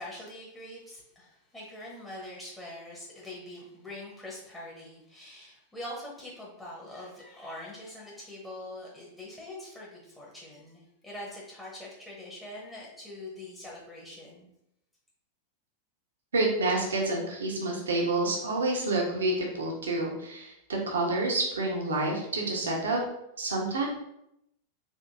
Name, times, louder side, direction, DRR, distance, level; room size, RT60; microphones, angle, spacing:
voice 1, 0.0-14.5, left 1 dB, 10° left, -5 dB, 1.2 m, -43 dB
voice 2, 16.3-23.0 23.4-23.9, right 2 dB, 70° right, -1 dB, 1.1 m, -28 dB
4.6 x 3.0 x 2.7 m, 0.80 s
figure-of-eight pair, 90°, 0 cm